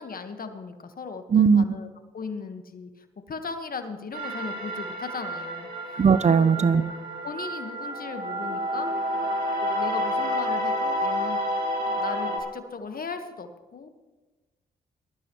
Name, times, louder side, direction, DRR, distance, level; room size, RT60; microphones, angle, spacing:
voice 1, 0.0-1.9 2.1-5.7 6.3-6.9 7.2-8.9 9.6-11.4 12.0-13.9, left 4 dB, 50° left, 8 dB, 1.5 m, -37 dB
voice 2, 1.3-1.6 6.0-6.8, right 6 dB, 35° right, 14 dB, 0.6 m, -18 dB
sound 1, 4.1-12.4, equal, 60° right, 4.3 m, -29 dB
19.0 x 13.0 x 3.2 m, 1.2 s
hypercardioid pair, 45°, 19 cm